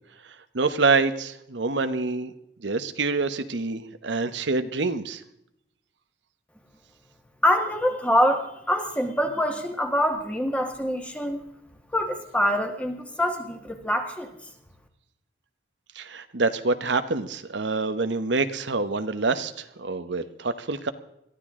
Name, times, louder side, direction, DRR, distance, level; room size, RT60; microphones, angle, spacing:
voice 1, 0.5-2.3 2.6-5.2 16.0-20.9, right 3 dB, 80° right, 9 dB, 1.0 m, -26 dB
voice 2, 7.4-11.4 11.9-14.3, equal, 5° left, 4 dB, 1.6 m, -25 dB
21.5 x 14.0 x 3.7 m, 0.78 s
head